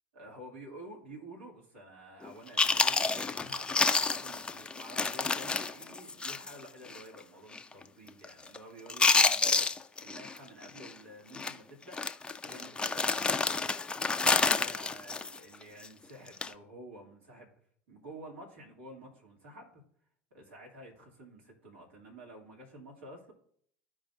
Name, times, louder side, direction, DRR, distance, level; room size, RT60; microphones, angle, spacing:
voice 1, 0.1-13.7 14.2-17.5 17.9-19.8 20.3-23.3, right 1 dB, 75° right, -1 dB, 2.5 m, -50 dB
Chewing mastication, 2.2-2.3 2.6-6.6 6.9-7.0 7.5-7.8 8.1-8.6 8.9-10.4 10.6-10.9 11.3-11.5 11.9-15.9 16.3-16.5, left 4 dB, 15° left, 0.4 m, -29 dB
13.5 x 5.1 x 2.6 m, 0.64 s
hypercardioid pair, 80°, 7 cm